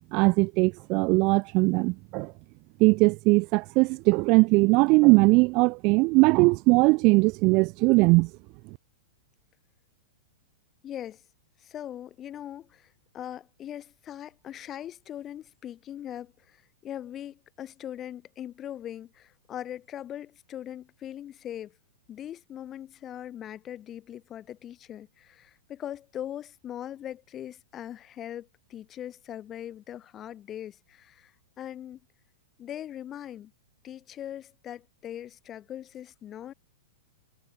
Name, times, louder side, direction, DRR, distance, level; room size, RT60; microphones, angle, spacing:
voice 1, 0.1-2.3 2.8-8.3, right 27 dB, 25° right, 0.3 m, -20 dB
voice 2, 10.8-11.2 11.6-21.8 22.1-32.0 32.6-33.5 33.8-36.5, left 11 dB, 15° left, 3.6 m, -40 dB
supercardioid pair, 175°, 0 cm